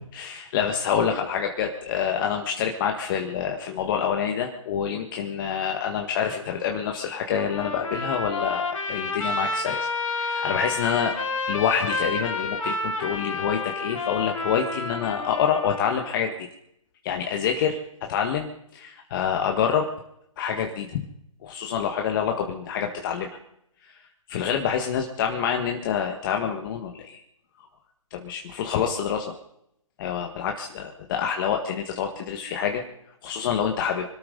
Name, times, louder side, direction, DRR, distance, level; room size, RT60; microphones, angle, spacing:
voice 1, 0.1-11.1 11.5-16.3 17.0-17.8 18.1-19.9 20.4-21.0 21.4-23.3 23.8-24.0 24.3-27.2 28.1-29.3 30.0-32.8 33.2-34.0, left 7 dB, 40° left, 3 dB, 1.7 m, -27 dB
Trumpet, 7.4-16.2, left 3 dB, 70° left, 3.4 m, -30 dB
26.0 x 13.0 x 3.9 m, 0.75 s
hypercardioid pair, 140°, 17 cm